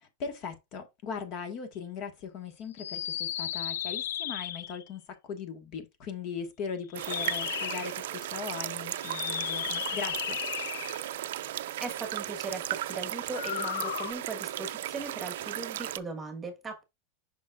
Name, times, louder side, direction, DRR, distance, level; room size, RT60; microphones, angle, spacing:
voice 1, 0.0-10.4, left 6 dB, 40° left, 1.4 m, -39 dB
sound 1, 2.7-4.9 6.9-8.0 9.0-11.1 13.2-14.1, left 11 dB, 85° left, 0.3 m, -34 dB
sound 2, 6.9-16.0, right 13 dB, 75° right, 0.5 m, -36 dB
voice 2, 11.8-16.8, right 3 dB, 15° right, 1.3 m, -38 dB
7.0 x 5.6 x 2.4 m
supercardioid pair, 155°, 0 cm